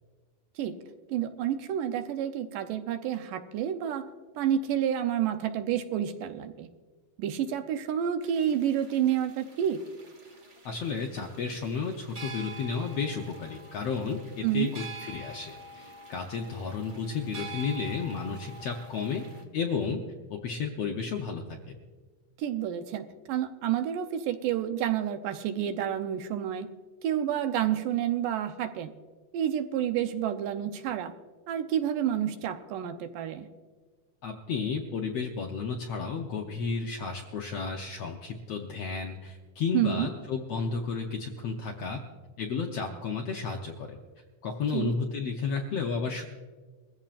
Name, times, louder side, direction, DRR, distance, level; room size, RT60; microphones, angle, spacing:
voice 1, 1.1-4.1 4.4-6.7 7.2-9.8 14.4-14.7 22.4-26.7 27.0-28.9 29.3-31.1 31.5-33.5 39.7-40.1 44.7-44.9, right 10 dB, 80° right, 8 dB, 2.4 m, -29 dB
sound 1, 8.2-19.4, right 2 dB, 50° right, 0.8 m, -46 dB
voice 2, 10.6-19.2 19.5-20.0 20.3-21.7 34.2-42.0 42.4-44.0 44.4-46.2, left 5 dB, 75° left, 1 dB, 1.5 m, -32 dB
22.0 x 14.5 x 2.5 m, 1.4 s
omnidirectional pair, 3.8 m